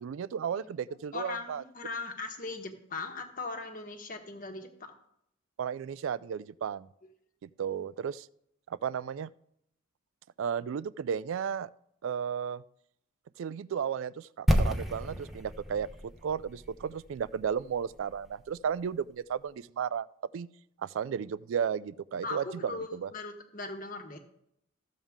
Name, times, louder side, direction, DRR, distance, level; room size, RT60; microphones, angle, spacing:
voice 1, 0.0-1.6 5.6-6.9 7.4-8.3 8.7-9.3 10.4-11.7 12.0-12.6 13.4-20.1 20.3-20.5 20.8-23.1, right 7 dB, 65° right, 19 dB, 0.3 m, -34 dB
voice 2, 0.5-4.9 22.2-24.2, left 3 dB, 40° left, 4 dB, 1.3 m, -39 dB
sound 1, 14.5-18.4 18.7-18.8, equal, ahead, 0.9 m, -31 dB
14.0 x 7.2 x 3.6 m, 0.74 s
head